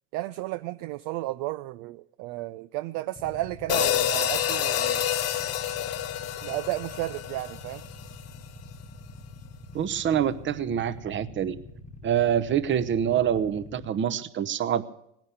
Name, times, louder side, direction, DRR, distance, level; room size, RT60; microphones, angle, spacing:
voice 1, 0.1-5.1 6.4-7.8, right 17 dB, 50° right, 14 dB, 0.5 m, -33 dB
Motorcycle / Idling, 3.2-13.9, left 2 dB, 15° left, 1.1 m, -45 dB
sound 1, 3.7-8.1, left 11 dB, 40° left, 1.0 m, -28 dB
voice 2, 9.7-11.6 12.0-14.8, right 9 dB, 30° right, 14 dB, 0.9 m, -26 dB
18.0 x 10.5 x 6.9 m, 0.76 s
hypercardioid pair, 95°, 39 cm